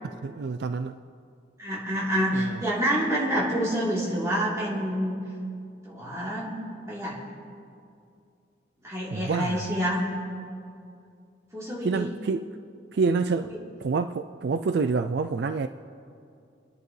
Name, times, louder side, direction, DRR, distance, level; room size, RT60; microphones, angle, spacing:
voice 1, 0.2-1.0 2.3-2.6 9.1-9.7 11.8-12.5 12.9-13.5 13.8-15.7, right 4 dB, 60° right, 9 dB, 0.3 m, -27 dB
voice 2, 1.6-5.1 5.8-6.5 6.9-7.2 8.8-10.0 11.5-12.1, equal, 15° right, -7 dB, 3.4 m, -27 dB
29.5 x 10.5 x 3.2 m, 2.5 s
head